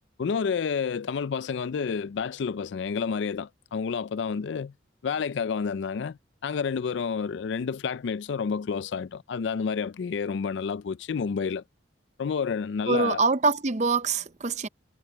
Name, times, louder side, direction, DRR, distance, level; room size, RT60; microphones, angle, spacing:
voice 1, 0.2-4.7 5.0-11.6 12.2-13.2, left 6 dB, 70° left, 0.4 m, -29 dB
voice 2, 12.9-14.7, right 4 dB, 35° right, 0.6 m, -24 dB
head